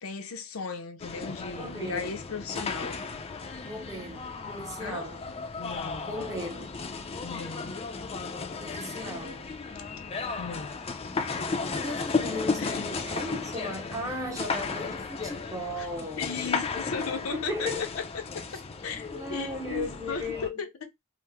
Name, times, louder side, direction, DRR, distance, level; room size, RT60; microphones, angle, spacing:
voice 1, 0.0-3.0 4.8-5.1 5.6-6.1 7.2-7.8 10.4-10.8 12.6-12.9 15.8-15.9 16.2-17.7 18.0-18.2 18.5-20.9, left 5 dB, 80° left, 0.6 m, -36 dB
sound 1, 1.0-20.5, left 4 dB, 30° left, 0.4 m, -34 dB
voice 2, 1.6-2.2 3.7-5.2 6.0-6.7 8.6-9.5 11.7-16.5 17.3-17.9 19.1-20.5, left 1 dB, 15° right, 0.6 m, -36 dB
2.9 x 2.0 x 3.4 m
head